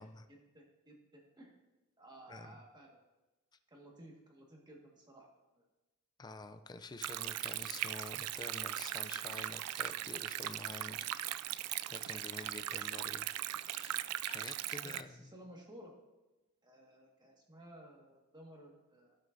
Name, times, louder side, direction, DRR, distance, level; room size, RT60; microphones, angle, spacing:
voice 1, 0.3-1.5 2.0-2.9 3.7-5.3 5.6-5.7 14.5-15.9 16.6-19.2, right 1 dB, 20° right, -1 dB, 1.7 m, -56 dB
voice 2, 2.3-2.6 6.2-11.6 11.9-15.3, left 3 dB, 20° left, 9 dB, 0.4 m, -49 dB
Stream, 7.0-15.0, right 13 dB, 80° right, 0.3 m, -39 dB
17.0 x 6.4 x 2.6 m, 1.1 s
head